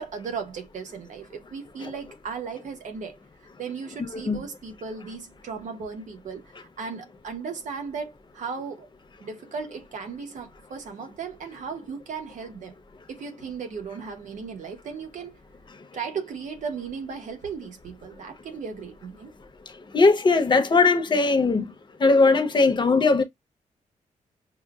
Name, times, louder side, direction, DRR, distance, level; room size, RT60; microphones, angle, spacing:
voice 1, 0.0-3.2 3.6-8.9 9.2-12.7 13.1-15.4 15.9-19.3, right 5 dB, 70° right, 1.1 m, -36 dB
voice 2, 19.9-21.7 22.0-23.2, left 3 dB, 35° left, 1.0 m, -19 dB
6.5 x 2.3 x 2.4 m
wide cardioid pair, 140°, 13 cm